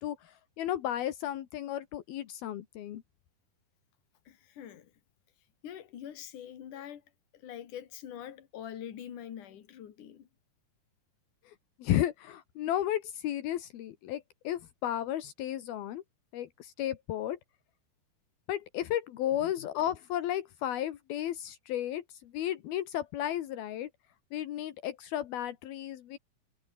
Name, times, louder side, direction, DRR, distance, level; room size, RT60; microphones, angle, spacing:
voice 1, 0.0-3.0 11.5-11.6 11.8-16.0 16.3-17.4 18.5-23.9 24.3-26.2, left 12 dB, 75° left, 3.3 m, -33 dB
voice 2, 4.3-4.9 5.6-7.0 7.3-10.3 19.3-19.7, left 10 dB, 60° left, 3.6 m, -44 dB
omnidirectional pair, 4.4 m